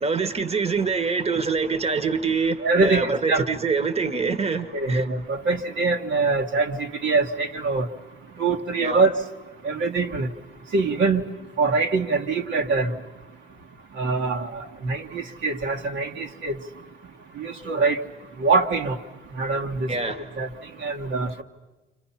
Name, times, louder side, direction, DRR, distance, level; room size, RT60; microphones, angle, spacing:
voice 1, 0.0-5.1 8.8-9.0 19.9-20.2, right 4 dB, 30° right, 1.3 m, -25 dB
voice 2, 2.6-3.5 4.7-7.9 8.4-9.1 9.6-10.3 10.7-11.2 11.6-12.9 14.0-16.6 17.4-18.0 18.4-19.0 19.4-20.5 20.8-21.4, right 3 dB, 75° right, 1.6 m, -24 dB
29.5 x 26.0 x 5.8 m
cardioid pair, 90°, 20 cm